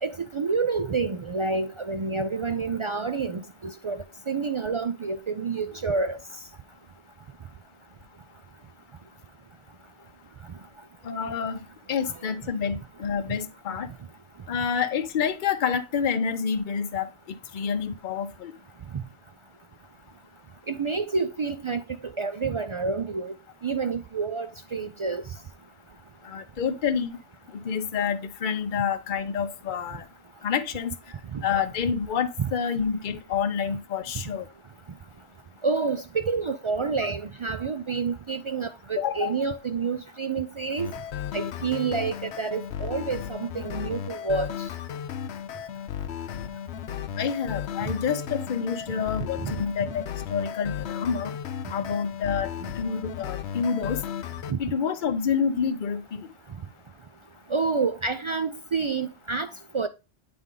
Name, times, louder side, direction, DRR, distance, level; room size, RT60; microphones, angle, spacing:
voice 1, 0.0-6.2 12.0-12.2 20.7-23.4 23.6-25.2 31.3-31.4 32.4-32.5 35.6-40.9 41.3-44.7 49.4-49.5 54.5-54.6 57.5-59.9, right 4 dB, 55° right, 0.3 m, -28 dB
voice 2, 11.0-11.6 11.9-13.9 14.5-18.5 26.2-27.2 27.5-30.1 30.4-30.9 31.4-34.5 39.0-39.4 47.2-51.3 51.7-54.0 54.6-56.3, left 6 dB, 55° left, 0.8 m, -28 dB
sound 1, 40.8-54.5, left 9 dB, 85° left, 0.9 m, -35 dB
9.3 x 3.5 x 3.7 m
omnidirectional pair, 1.1 m